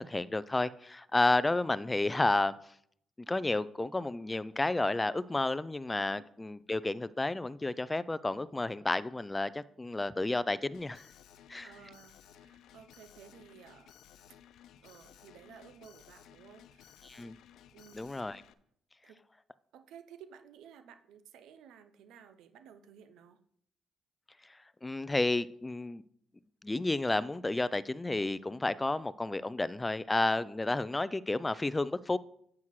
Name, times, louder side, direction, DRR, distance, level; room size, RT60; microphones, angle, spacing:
voice 1, 0.0-2.7 3.2-11.0 11.5-11.7 17.0-17.4 17.9-18.4 24.4-26.0 26.6-32.2, left 2 dB, 15° left, 0.4 m, -31 dB
Alarm, 10.7-18.5, left 10 dB, 80° left, 0.5 m, -57 dB
voice 2, 11.6-13.9 14.8-17.1 17.7-18.3 19.0-19.2 19.7-23.4, right 8 dB, 85° right, 0.6 m, -55 dB
9.6 x 7.5 x 3.1 m
cardioid pair, 90°, 0 cm